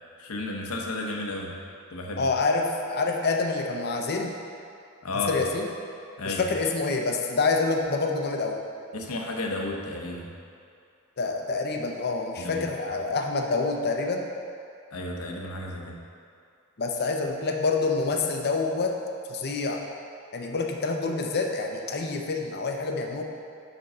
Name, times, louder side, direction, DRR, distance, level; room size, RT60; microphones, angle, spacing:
voice 1, 0.2-1.6 1.9-2.2 5.0-5.4 6.2-6.4 8.9-10.3 12.4-12.6 14.9-16.0, left 2 dB, 70° left, 0 dB, 0.9 m, -33 dB
voice 2, 2.2-4.3 5.3-5.7 6.2-8.6 11.2-14.2 16.8-18.9 19.3-19.8 20.3-23.2, left 3 dB, 45° left, 2 dB, 0.6 m, -27 dB
5.3 x 5.2 x 5.4 m, 2.4 s
head